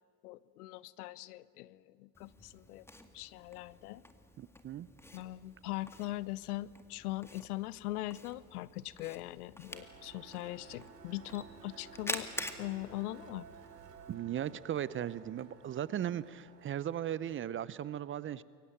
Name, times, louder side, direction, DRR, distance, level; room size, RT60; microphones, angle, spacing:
voice 1, 0.2-2.9 3.1-4.0 5.1-12.3 12.6-13.5, left 17 dB, 70° left, 19 dB, 1.0 m, -41 dB
Camera, 2.1-14.1, left 1 dB, 5° left, 2.1 m, -48 dB
voice 2, 4.4-4.9 14.1-18.4, right 10 dB, 25° right, 18 dB, 0.7 m, -37 dB
sound 1, 9.7-17.5, right 6 dB, 80° right, 3.0 m, -55 dB
28.0 x 23.5 x 8.9 m, 2.1 s
hypercardioid pair, 95°, 47 cm